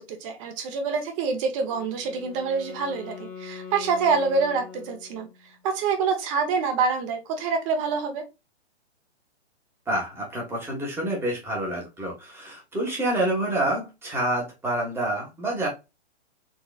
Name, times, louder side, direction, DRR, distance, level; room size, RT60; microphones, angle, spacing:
voice 1, 0.0-5.3 5.6-8.2, right 5 dB, 30° right, 0.9 m, -26 dB
Wind instrument woodwind instrument, 1.6-5.6, left 6 dB, 10° left, 0.4 m, -42 dB
voice 2, 9.9-15.7, right 1 dB, 5° right, 1.2 m, -28 dB
3.7 x 3.1 x 2.3 m
hypercardioid pair, 145°, 34 cm